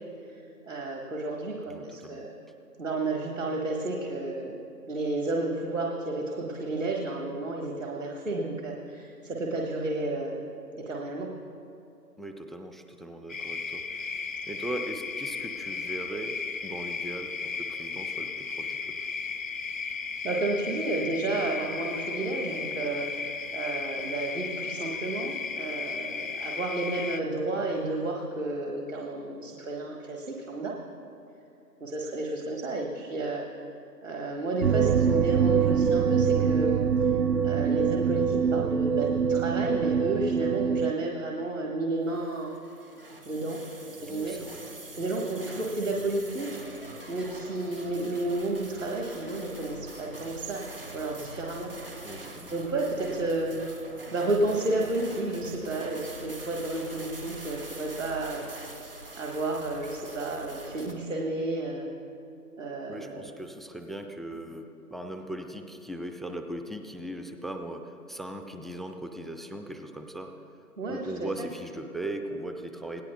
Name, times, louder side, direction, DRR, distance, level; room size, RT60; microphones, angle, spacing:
voice 1, 0.3-2.3 2.8-4.6 4.9-10.5 10.8-11.3 20.2-30.8 31.8-33.7 34.0-37.1 37.4-42.5 43.3-43.6 44.0-44.4 44.9-46.6 47.1-50.7 50.9-51.7 52.0-52.1 52.5-53.6 54.1-58.4 59.2-61.9 62.6-63.3 70.8-71.5, right 2 dB, 50° right, -1 dB, 1.6 m, -32 dB
voice 2, 1.7-2.3 12.2-14.2 14.5-19.1 44.1-44.6 52.0-52.5 62.9-70.3 70.9-73.0, right 1 dB, ahead, 5 dB, 0.4 m, -39 dB
sound 1, 13.3-27.2, left 5 dB, 55° left, 0.5 m, -35 dB
sound 2, 34.6-40.9, right 7 dB, 70° right, 0.7 m, -24 dB
sound 3, 42.2-60.9, right 2 dB, 35° right, 1.0 m, -44 dB
26.5 x 18.5 x 2.3 m, 2.7 s
figure-of-eight pair, 170°, 50 cm